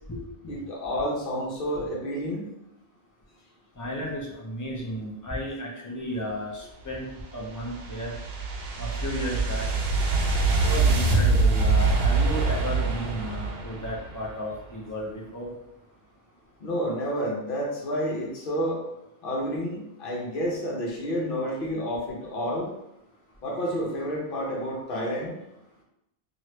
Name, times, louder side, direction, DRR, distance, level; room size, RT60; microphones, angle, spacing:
voice 1, 0.5-2.4 16.6-18.8 19.2-22.7 23.4-25.3, equal, 60° left, -4 dB, 1.0 m, -30 dB
voice 2, 3.8-7.1 7.3-8.1 8.8-9.7 10.6-15.5, equal, 20° left, -3 dB, 0.6 m, -33 dB
sound 1, 7.1-14.3, right 3 dB, 75° right, 0.8 m, -24 dB
3.1 x 2.5 x 3.1 m, 0.88 s
omnidirectional pair, 1.0 m